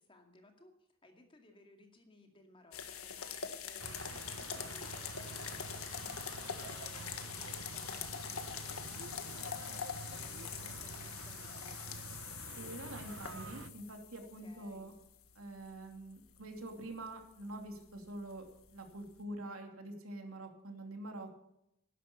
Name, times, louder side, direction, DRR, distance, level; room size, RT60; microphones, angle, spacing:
voice 1, 0.0-12.0 14.2-14.9, left 2 dB, 25° left, 4 dB, 2.2 m, -61 dB
sound 1, 2.7-19.2, left 8 dB, 85° left, 1.6 m, -45 dB
sound 2, 3.8-13.7, right 4 dB, 60° right, 0.8 m, -48 dB
voice 2, 12.6-14.9 15.3-18.4 18.7-21.4, right 1 dB, 80° right, 4 dB, 2.9 m, -46 dB
12.0 x 11.0 x 6.9 m, 0.80 s
head